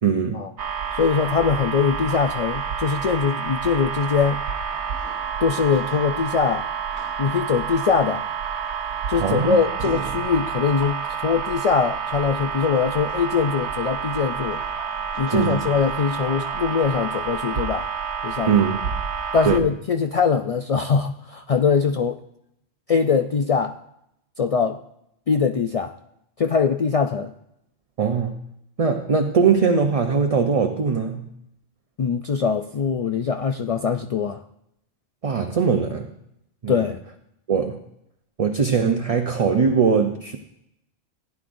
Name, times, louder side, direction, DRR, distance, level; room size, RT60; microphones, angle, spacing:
voice 1, 0.0-0.4 9.2-9.6 15.3-15.6 18.5-18.8 19.4-19.6 28.0-28.3 28.8-31.3 35.2-36.1 36.6-36.8 37.5-37.8 38.4-40.4, right 6 dB, 40° right, 4 dB, 0.6 m, -21 dB
sound 1, 0.6-19.6, right 6 dB, 80° right, 1.0 m, -29 dB
voice 2, 0.9-4.4 5.4-6.6 7.2-8.2 9.1-14.6 15.2-17.9 18.2-18.6 19.3-22.2 22.9-23.8 24.4-24.8 25.3-25.9 26.4-27.3 32.0-34.4 36.7-37.0, left 6 dB, 65° left, 5 dB, 0.3 m, -22 dB
16.0 x 9.6 x 2.6 m, 0.78 s
omnidirectional pair, 1.1 m